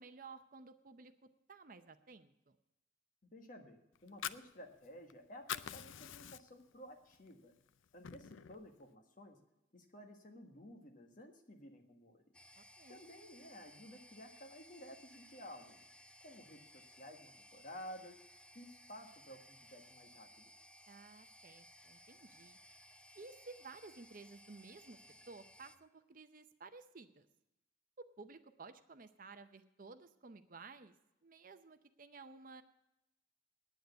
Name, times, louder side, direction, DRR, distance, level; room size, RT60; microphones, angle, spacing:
voice 1, 0.0-2.6 12.6-13.0 20.9-22.6 23.1-25.0 25.3-27.3 28.0-30.9 31.2-32.6, right 4 dB, 45° right, 10 dB, 0.6 m, -55 dB
voice 2, 3.3-7.5 7.9-9.4 9.7-12.2 12.9-15.8 16.2-18.2 18.5-20.5, equal, 45° left, 4 dB, 1.5 m, -54 dB
Fire, 4.0-5.1 5.4-6.7 7.1-7.3 7.7-8.6, left 9 dB, 80° left, 0.5 m, -44 dB
sound 1, 12.3-25.8, left 1 dB, 5° left, 0.4 m, -60 dB
9.2 x 9.2 x 8.0 m, 0.91 s
head